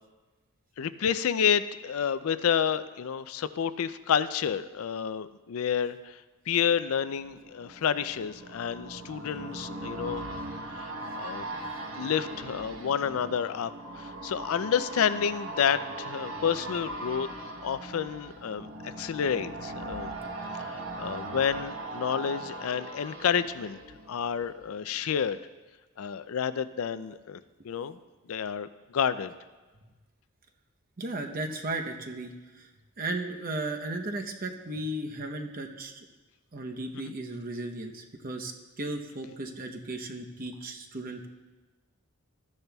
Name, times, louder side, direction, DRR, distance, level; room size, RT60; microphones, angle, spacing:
voice 1, 0.8-6.2 6.5-10.2 10.7-11.4 12.0-13.7 14.0-20.2 20.7-23.8 24.1-25.4 26.0-28.0 28.3-29.3 36.9-37.1, left 7 dB, 75° left, 14 dB, 0.4 m, -30 dB
sound 1, 6.9-24.7 25.0-25.1, right 2 dB, 65° right, 1.0 m, -39 dB
voice 2, 31.0-32.7 33.0-36.1 36.5-38.5 38.8-41.3, right 2 dB, 40° right, 4 dB, 0.8 m, -35 dB
14.5 x 10.5 x 2.3 m, 1.2 s
head